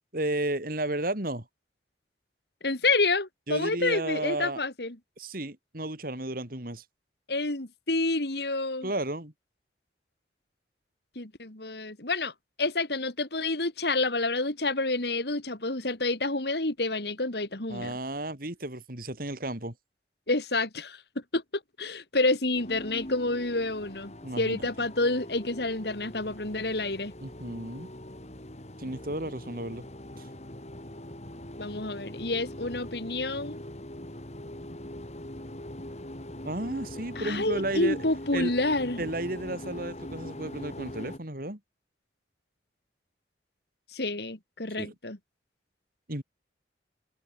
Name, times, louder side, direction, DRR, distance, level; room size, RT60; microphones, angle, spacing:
voice 1, 0.1-1.5 3.5-4.6 5.2-6.8 8.8-9.3 17.7-19.7 24.2-24.7 27.2-27.9 28.8-29.9 30.2-30.3 36.4-38.0 38.3-38.5 39.0-41.6 44.8-44.9 46.1-46.2, right 1 dB, 50° right, 3.7 m, -33 dB
voice 2, 2.6-5.0 7.3-8.9 11.2-12.3 12.6-17.9 20.3-21.0 21.3-21.4 21.8-27.1 31.6-33.6 37.2-39.0 43.9-45.2, left 2 dB, 60° left, 2.7 m, -29 dB
sound 1, 22.5-41.2, left 1 dB, 40° left, 3.3 m, -42 dB
head